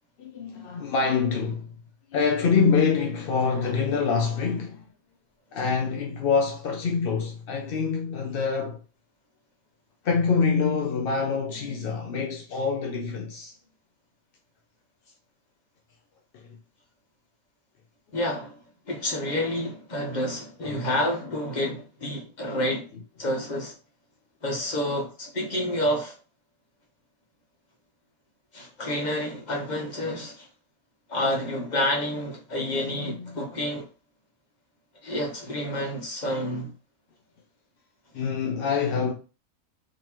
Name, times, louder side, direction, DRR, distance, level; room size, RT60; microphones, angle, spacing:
voice 1, 0.2-1.7 2.1-4.8 5.5-8.8 10.0-13.5 16.3-16.6 20.6-20.9 32.9-33.3 38.1-39.1, left 5 dB, 60° left, 0.6 m, -25 dB
voice 2, 18.1-18.6 18.9-22.9 23.2-23.7 24.4-26.2 28.5-30.5 31.1-33.9 35.0-36.7, left 1 dB, 35° left, 1.1 m, -29 dB
3.8 x 3.0 x 3.0 m
omnidirectional pair, 1.5 m